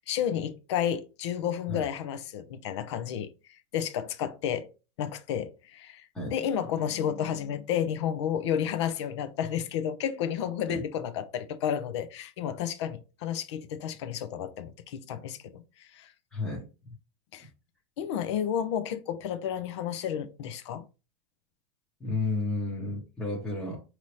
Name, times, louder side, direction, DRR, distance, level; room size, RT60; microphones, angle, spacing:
voice 1, 0.1-3.3 3.7-4.7 5.0-6.0 6.3-16.1 17.3-17.5 18.0-20.8, left 9 dB, 60° left, 0.8 m, -31 dB
voice 2, 16.3-16.7 17.4-17.5 22.0-23.8, left 2 dB, 10° left, 1.0 m, -32 dB
5.4 x 3.0 x 3.2 m
supercardioid pair, 175°, 16 cm